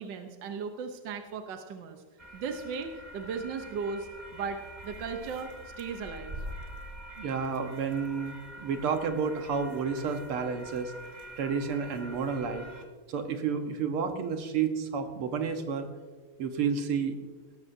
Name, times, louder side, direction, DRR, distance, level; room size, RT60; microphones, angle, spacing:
voice 1, 0.0-2.0 2.3-5.5 5.8-6.4, right 5 dB, 65° right, 5 dB, 1.4 m, -37 dB
sound 1, 2.2-12.8, right 1 dB, 35° right, 0.8 m, -45 dB
voice 2, 7.2-10.9 11.4-12.6 13.1-15.9 16.4-17.2, right 6 dB, 85° right, 6 dB, 2.1 m, -30 dB
18.0 x 13.5 x 2.7 m, 1.4 s
omnidirectional pair, 2.3 m